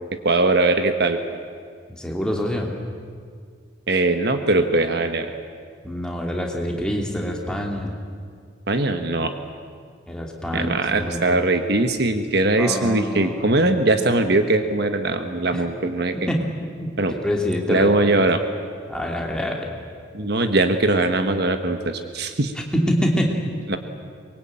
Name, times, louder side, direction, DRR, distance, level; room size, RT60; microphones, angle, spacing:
voice 1, 0.2-1.2 3.9-5.3 8.7-9.3 10.5-16.1 17.0-17.1 17.7-18.4 20.1-22.5 23.7-23.8, right 2 dB, 55° right, 7 dB, 1.3 m, -20 dB
voice 2, 2.0-2.7 5.8-7.9 10.1-11.4 12.6-13.8 15.5-15.6 16.1-16.4 16.8-18.2 18.9-19.7 22.6-23.4, equal, 5° left, 0 dB, 2.7 m, -26 dB
23.5 x 22.0 x 8.8 m, 2.1 s
head